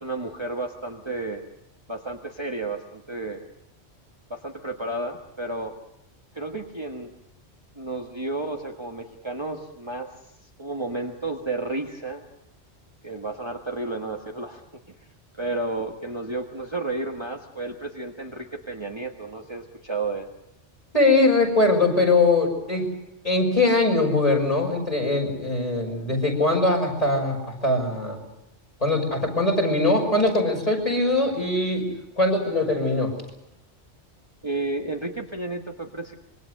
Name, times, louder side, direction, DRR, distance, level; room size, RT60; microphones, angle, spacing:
voice 1, 0.0-1.4 1.9-3.5 4.3-5.7 6.3-7.1 7.8-10.1 10.6-12.2 13.0-14.6 15.4-20.3 34.4-36.1, right 2 dB, 25° right, 2 dB, 1.6 m, -32 dB
voice 2, 20.9-22.9 23.2-28.2 28.8-31.8 32.2-33.1, left 2 dB, 30° left, 1 dB, 6.5 m, -21 dB
26.0 x 23.0 x 6.6 m, 0.88 s
omnidirectional pair, 1.2 m